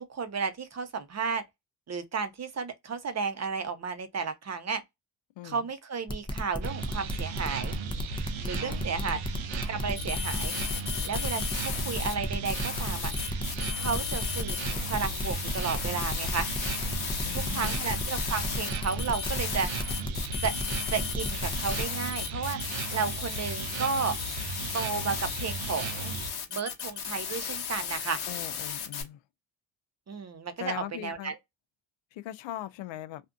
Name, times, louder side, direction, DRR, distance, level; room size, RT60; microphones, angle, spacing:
voice 1, 0.1-1.4 1.9-4.8 5.4-7.7 8.4-9.2 9.7-10.5 11.0-13.1 13.7-16.5 17.3-19.7 20.4-20.5 20.9-22.6 22.9-24.1 24.7-26.1 26.5-28.2 30.1-31.4, right 5 dB, 35° right, 0.7 m, -33 dB
voice 2, 5.4-5.7 8.6-9.2 17.2-18.1 28.3-29.2 30.6-31.3 32.1-33.2, left 13 dB, 75° left, 0.6 m, -40 dB
sound 1, 6.1-21.8, left 1 dB, 10° left, 0.6 m, -34 dB
sound 2, 6.6-26.3, right 5 dB, 85° right, 0.7 m, -36 dB
sound 3, 10.0-12.1 12.4-29.0, left 8 dB, 55° left, 1.1 m, -35 dB
2.6 x 2.5 x 2.3 m
cardioid pair, 75°, 46 cm